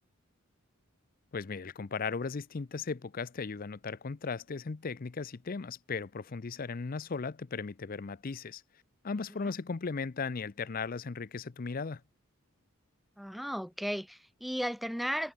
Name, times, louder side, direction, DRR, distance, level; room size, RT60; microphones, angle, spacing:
voice 1, 1.3-8.6 9.0-12.0, left 4 dB, 40° left, 0.5 m, -37 dB
voice 2, 13.2-15.3, equal, ahead, 0.9 m, -35 dB
head